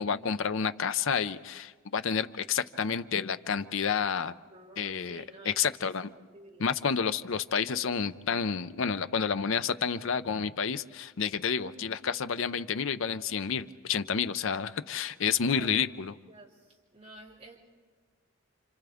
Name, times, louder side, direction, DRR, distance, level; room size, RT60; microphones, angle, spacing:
voice 1, 0.0-4.3 4.8-6.1 6.6-16.1, left 6 dB, 70° left, 12 dB, 0.6 m, -30 dB
voice 2, 4.5-5.9 6.3-6.7 7.5-7.8 11.6-11.9 15.5-15.7 16.3-17.6, right 2 dB, 30° right, -6 dB, 3.9 m, -51 dB
30.0 x 26.5 x 3.5 m, 1.4 s
head